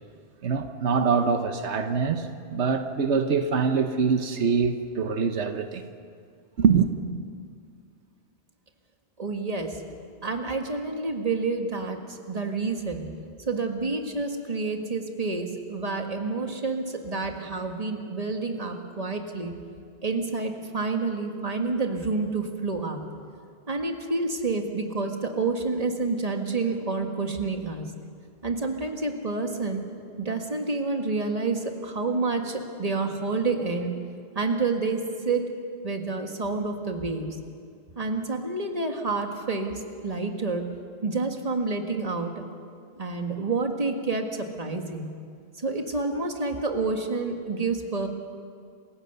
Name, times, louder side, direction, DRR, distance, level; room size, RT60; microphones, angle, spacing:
voice 1, 0.4-5.9 6.6-6.9, right 6 dB, 85° right, 7 dB, 1.3 m, -24 dB
voice 2, 9.2-9.8 10.2-13.0 13.5-19.5 20.0-23.0 23.7-27.9 28.4-29.8 30.2-33.9 34.3-35.4 35.8-37.4 38.0-40.6 41.0-42.4 43.0-45.1 45.6-48.1, right 3 dB, 35° right, 4 dB, 1.8 m, -29 dB
28.0 x 16.0 x 6.8 m, 2.3 s
omnidirectional pair, 1.1 m